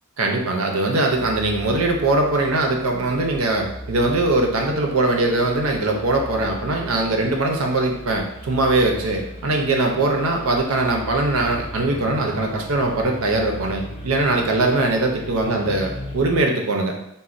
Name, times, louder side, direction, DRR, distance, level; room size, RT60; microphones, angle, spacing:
voice 1, 0.2-16.9, right 2 dB, 90° right, 2 dB, 0.6 m, -21 dB
sound 1, 1.1-16.4, equal, 30° left, 0.5 m, -37 dB
4.1 x 2.2 x 2.4 m, 0.83 s
head